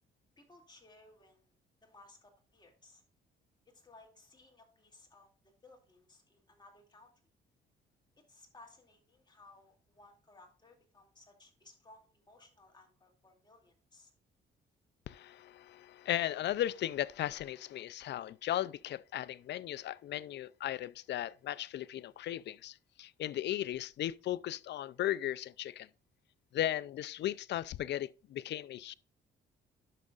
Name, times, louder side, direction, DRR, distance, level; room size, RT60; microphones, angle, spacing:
voice 1, 0.4-1.5 1.8-3.0 3.7-7.1 8.3-14.1, left 2 dB, 20° left, 2.5 m, -60 dB
voice 2, 15.1-25.9 26.5-28.9, left 12 dB, 60° left, 0.4 m, -36 dB
10.5 x 6.4 x 2.4 m
cardioid pair, 90°, 20 cm